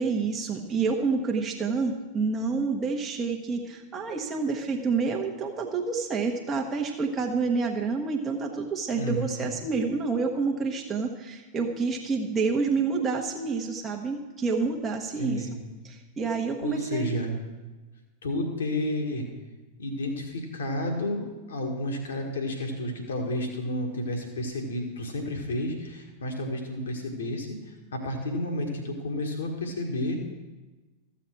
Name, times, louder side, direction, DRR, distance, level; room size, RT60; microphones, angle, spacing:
voice 1, 0.0-15.5 15.8-17.1, right 4 dB, 20° right, 0 dB, 1.1 m, -28 dB
voice 2, 9.0-9.5 15.2-15.5 16.6-17.3 18.2-19.3 19.8-30.2, left 1 dB, 65° left, 3 dB, 1.7 m, -31 dB
14.0 x 7.2 x 4.6 m, 1.2 s
figure-of-eight pair, 90°, 0 cm